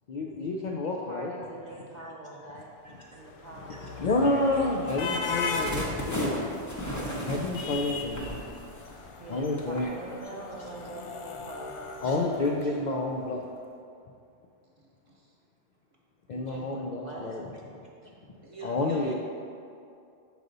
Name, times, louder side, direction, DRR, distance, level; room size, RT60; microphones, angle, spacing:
voice 1, 0.1-1.3 4.0-6.3 6.9-8.4 9.3-9.9 12.0-13.4 16.3-17.4 18.0-18.1 18.6-19.1, left 2 dB, 60° left, 0 dB, 0.5 m, -29 dB
voice 2, 0.8-2.7 3.1-4.1 9.2-12.2 16.3-17.4, right 2 dB, 50° right, -3 dB, 0.6 m, -43 dB
sound 1, 2.9-13.2, left 4 dB, 90° left, 0.9 m, -39 dB
sound 2, 4.9-9.2 9.6-9.8, equal, 15° left, 0.8 m, -34 dB
voice 3, 14.8-15.3 18.4-19.1, right 3 dB, 30° right, -3 dB, 0.9 m, -46 dB
6.6 x 4.8 x 3.9 m, 2.5 s
omnidirectional pair, 1.2 m